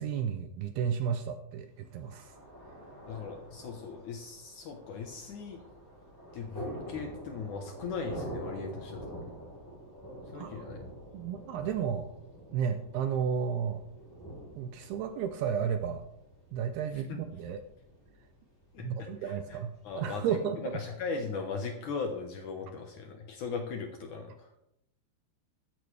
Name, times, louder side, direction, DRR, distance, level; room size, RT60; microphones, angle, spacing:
voice 1, 0.0-2.3 10.3-10.7 11.1-12.1 12.5-13.8 14.6-16.0 16.5-17.6 18.8-20.7, right 7 dB, 80° right, 7 dB, 2.4 m, -33 dB
Thunder, 1.8-20.7, right 1 dB, 5° left, 3.3 m, -47 dB
voice 2, 3.0-5.6 6.3-9.2 10.3-10.8 17.1-17.2 18.7-19.6 19.8-24.5, left 5 dB, 75° left, 3 dB, 1.8 m, -38 dB
13.5 x 13.0 x 3.4 m, 0.81 s
omnidirectional pair, 5.2 m